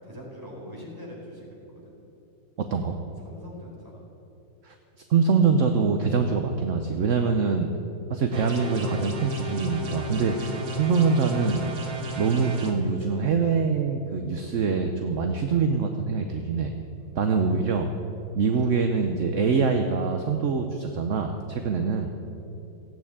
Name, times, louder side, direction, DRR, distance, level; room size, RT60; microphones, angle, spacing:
voice 1, 0.0-1.9 3.2-4.0 17.0-17.2 21.3-21.6 22.2-22.5, equal, 10° right, -4 dB, 4.1 m, -43 dB
voice 2, 2.6-3.0 4.6-4.7 5.1-7.7 8.1-11.6 12.2-16.7 17.2-17.9 18.3-22.1, right 5 dB, 55° right, 5 dB, 1.0 m, -24 dB
sound 1, 8.3-12.7, equal, 75° right, 2.2 m, -33 dB
15.5 x 8.9 x 8.7 m, 2.9 s
omnidirectional pair, 2.0 m